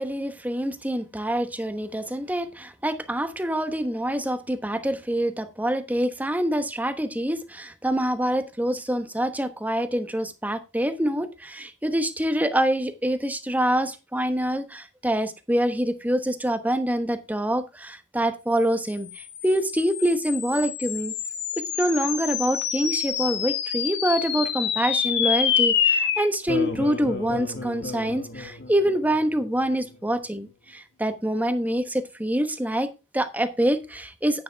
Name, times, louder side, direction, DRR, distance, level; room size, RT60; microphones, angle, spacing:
voice 1, 0.0-21.1 21.8-34.4, right 1 dB, 10° right, 9 dB, 1.1 m, -26 dB
sound 1, 19.0-29.7, left 7 dB, 65° left, 1.7 m, -28 dB
10.0 x 10.0 x 3.5 m, 0.27 s
head